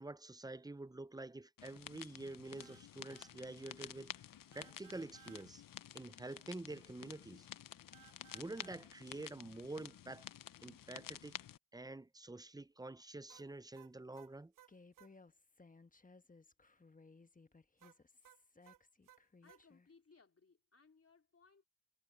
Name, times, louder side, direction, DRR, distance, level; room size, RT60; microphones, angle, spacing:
voice 1, 0.0-4.3 4.5-5.6 5.9-7.5 8.3-10.3 10.6-11.3 11.7-14.5, right 2 dB, 10° right, 0.7 m, -48 dB
sound 1, 1.6-11.6, left 10 dB, 70° left, 0.9 m, -52 dB
sound 2, 2.6-2.9 3.1-3.4 4.5-5.5 7.9-8.8 13.3-15.1 17.8-19.6, right 12 dB, 70° right, 0.7 m, -63 dB
Human voice, 14.7-19.9, left 3 dB, 25° left, 1.3 m, -62 dB
voice 2, 19.4-21.6, left 4 dB, 45° left, 3.7 m, -66 dB
supercardioid pair, 45°, 34 cm